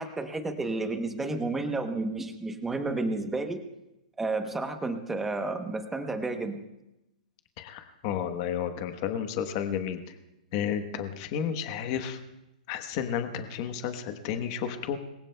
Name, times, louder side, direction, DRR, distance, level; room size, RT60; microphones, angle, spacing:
voice 1, 0.0-3.6 4.2-6.6, right 2 dB, 5° right, 6 dB, 0.8 m, -31 dB
voice 2, 7.6-10.1 10.5-12.2 12.7-15.0, left 8 dB, 30° left, 7 dB, 1.0 m, -32 dB
26.5 x 22.0 x 2.2 m, 0.92 s
hypercardioid pair, 175°, 5 cm